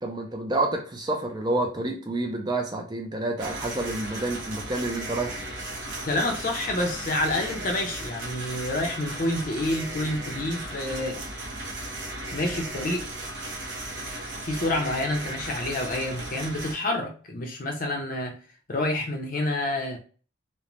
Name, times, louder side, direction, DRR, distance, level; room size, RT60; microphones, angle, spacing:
voice 1, 0.0-5.3, right 2 dB, 20° right, 0.4 m, -29 dB
sound 1, 3.4-16.7, right 1 dB, 65° right, 0.7 m, -36 dB
voice 2, 6.0-11.2 12.3-13.0 14.4-18.3 18.7-20.0, left 1 dB, 45° left, 0.6 m, -28 dB
3.0 x 2.0 x 2.5 m
head